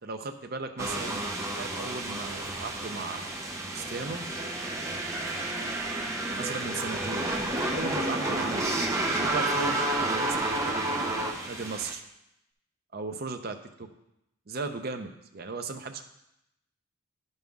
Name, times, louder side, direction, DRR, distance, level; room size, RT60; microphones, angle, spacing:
voice 1, 0.0-3.3 3.7-4.2 6.4-7.3 7.7-8.7 9.1-12.0 12.9-13.9 14.5-16.0, right 3 dB, 45° right, 6 dB, 0.6 m, -37 dB
sound 1, 0.8-11.9, right 2 dB, 15° right, 0.7 m, -30 dB
10.5 x 5.5 x 3.5 m, 0.84 s
head